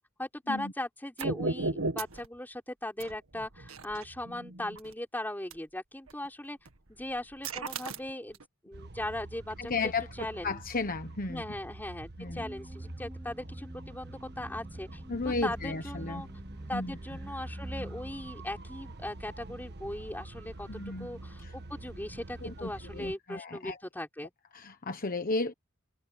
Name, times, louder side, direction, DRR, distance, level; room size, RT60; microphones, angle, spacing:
voice 1, 0.2-6.6 6.9-9.9 10.2-10.6 11.3-15.0 15.4-16.3 16.7-24.3, left 1 dB, 10° left, 4.2 m, -39 dB
sound 1, 1.2-2.2 3.0-4.9 5.5-5.6 6.1-6.3 6.6-8.4, right 3 dB, 90° right, 1.8 m, -35 dB
sound 2, 8.7-23.2, right 2 dB, 55° right, 1.3 m, -46 dB
voice 2, 9.6-11.4 12.2-12.4 15.1-16.2 16.7-17.0 20.7-21.1 21.4-21.5 22.4-23.8 24.5-25.5, left 3 dB, 45° left, 1.2 m, -34 dB
sound 3, 12.3-18.1, right 1 dB, 10° right, 0.7 m, -45 dB
head